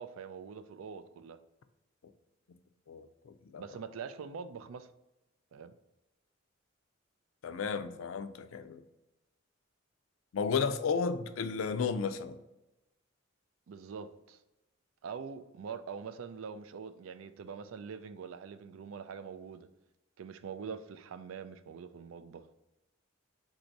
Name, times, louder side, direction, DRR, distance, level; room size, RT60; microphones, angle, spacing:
voice 1, 0.0-1.4 3.6-4.9 5.5-5.7 13.7-14.4 15.0-19.7 20.2-22.5, right 6 dB, 90° right, 0.4 m, -44 dB
voice 2, 2.9-3.6 7.4-8.8 10.3-12.4, left 5 dB, 85° left, 0.4 m, -33 dB
3.9 x 2.7 x 4.5 m
head